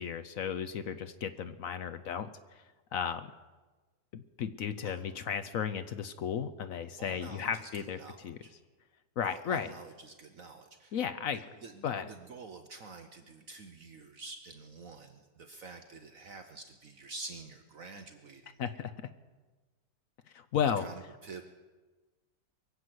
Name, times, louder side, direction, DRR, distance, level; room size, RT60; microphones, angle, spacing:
voice 1, 0.0-2.3 2.9-3.3 4.1-8.4 9.2-9.7 10.9-11.4 11.8-12.1 18.6-18.9 20.5-20.9, left 8 dB, 60° left, 11 dB, 1.0 m, -34 dB
voice 2, 7.0-8.5 9.2-18.6 20.8-21.4, right 3 dB, 55° right, 6 dB, 1.2 m, -48 dB
23.0 x 8.0 x 7.8 m, 1.3 s
omnidirectional pair, 1.8 m